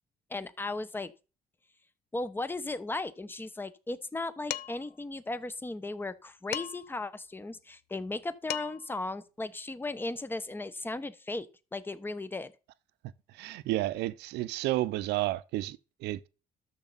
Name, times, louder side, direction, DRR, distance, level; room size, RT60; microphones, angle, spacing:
voice 1, 0.3-1.1 2.1-11.5 11.7-12.5, left 2 dB, 10° left, 0.8 m, -36 dB
Dishes pots and pans, 4.5-4.9 6.5-7.0 8.2-8.3 8.5-9.0, left 13 dB, 75° left, 0.6 m, -37 dB
voice 2, 13.4-16.3, right 16 dB, 85° right, 0.6 m, -31 dB
12.5 x 6.8 x 4.1 m
cardioid pair, 110°, 17 cm